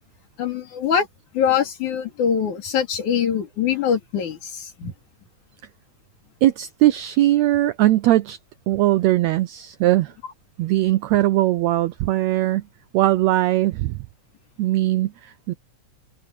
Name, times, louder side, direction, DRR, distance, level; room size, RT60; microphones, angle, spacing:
voice 1, 0.4-1.1 1.3-4.9, left 8 dB, 65° left, 4.1 m, -23 dB
voice 2, 6.4-8.4 8.7-10.1 10.6-12.6 12.9-14.0 14.6-15.5, right 15 dB, 90° right, 1.5 m, -20 dB
omnidirectional pair, 3.8 m